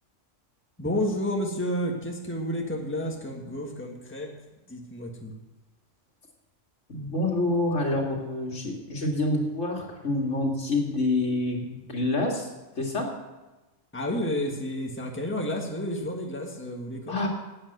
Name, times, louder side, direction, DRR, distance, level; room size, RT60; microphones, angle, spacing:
voice 1, 0.8-4.4 4.7-5.3 13.9-17.3, left 1 dB, 10° left, 1 dB, 1.5 m, -31 dB
voice 2, 6.9-12.5 12.8-13.1 17.1-17.3, left 2 dB, 70° left, 1 dB, 2.4 m, -27 dB
10.0 x 8.8 x 7.8 m, 1.1 s
omnidirectional pair, 1.3 m